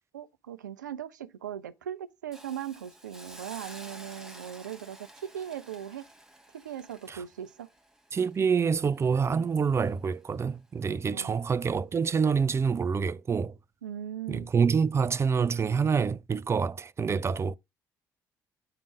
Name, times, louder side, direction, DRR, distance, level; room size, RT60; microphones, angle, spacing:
voice 1, 0.1-5.1 5.3-6.1 6.5-7.7 11.1-11.4 13.8-14.5, right 10 dB, 80° right, 0.4 m, -39 dB
Hiss, 2.3-9.4 9.7-9.9, right 1 dB, 5° right, 1.7 m, -50 dB
voice 2, 8.1-13.6 14.3-17.5, right 6 dB, 25° right, 0.5 m, -27 dB
9.0 x 3.7 x 4.8 m
figure-of-eight pair, 45°, 10 cm